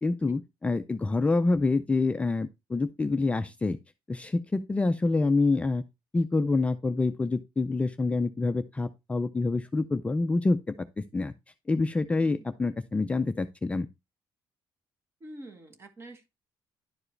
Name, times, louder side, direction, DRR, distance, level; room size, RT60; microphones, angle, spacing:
voice 1, 0.0-3.8 4.1-5.8 6.1-11.3 11.7-13.9, left 3 dB, 15° left, 0.4 m, -27 dB
voice 2, 12.2-12.5 15.2-16.3, right 1 dB, 30° right, 1.5 m, -46 dB
11.0 x 4.8 x 3.2 m
cardioid pair, 145°, 9 cm